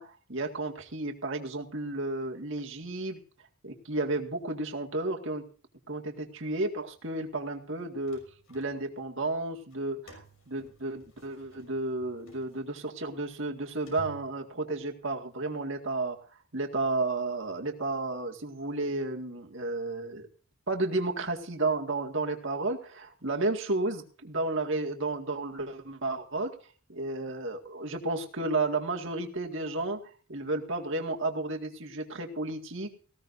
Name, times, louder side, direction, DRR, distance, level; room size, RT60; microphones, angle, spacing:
voice 1, 0.0-3.2 3.6-5.4 5.9-8.2 8.5-16.2 16.5-20.3 20.7-26.6 26.9-30.0 30.3-32.9, right 2 dB, 55° right, 2 dB, 2.1 m, -32 dB
sound 1, 7.8-9.1 9.6-14.9, right 2 dB, 70° left, 5.8 m, -54 dB
19.0 x 16.5 x 2.7 m, 0.39 s
head